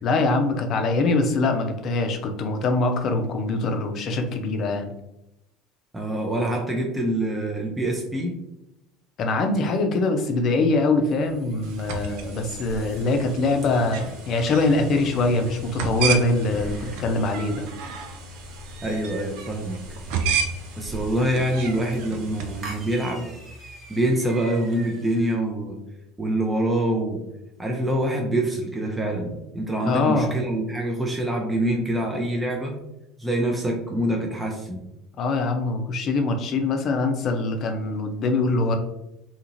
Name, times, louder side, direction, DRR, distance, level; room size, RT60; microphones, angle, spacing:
voice 1, 0.0-4.9 9.2-17.7 29.9-30.4 35.2-38.8, left 2 dB, 45° left, 5 dB, 0.5 m, -23 dB
voice 2, 5.9-8.3 18.8-19.8 20.8-23.3 23.9-25.8 26.2-27.2 27.6-32.8 33.2-34.8, right 1 dB, 10° right, 0 dB, 0.6 m, -25 dB
sound 1, 11.0-25.4, left 1 dB, 40° right, 0.9 m, -43 dB
sound 2, 11.6-23.0, right 5 dB, 65° right, 0.4 m, -33 dB
2.8 x 2.4 x 2.9 m, 0.90 s
hypercardioid pair, 70°, 0 cm